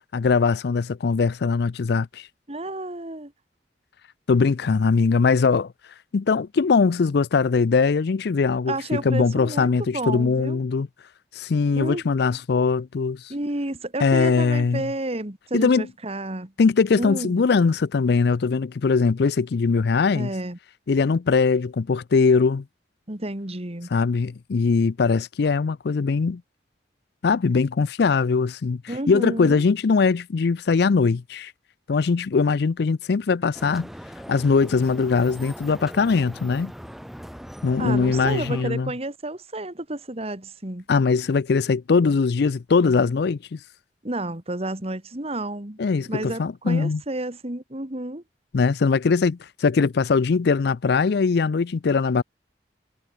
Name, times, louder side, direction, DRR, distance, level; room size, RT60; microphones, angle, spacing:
voice 1, 0.1-2.3 4.3-5.7 6.1-10.9 11.4-13.3 14.0-14.9 15.5-15.9 16.6-20.3 20.9-22.6 23.9-26.4 27.2-28.8 29.1-31.5 31.9-33.9 34.3-36.7 37.6-38.9 40.9-43.6 45.8-47.0 48.5-52.2, left 4 dB, 65° left, 0.4 m, -21 dB
voice 2, 2.5-3.3 8.7-10.6 11.7-12.0 13.3-16.5 17.0-17.4 20.1-20.6 23.1-23.9 28.9-29.6 37.8-40.8 44.0-45.8 46.1-48.2, right 1 dB, 35° right, 2.3 m, -31 dB
sound 1, 33.5-38.6, equal, ahead, 1.2 m, -40 dB
head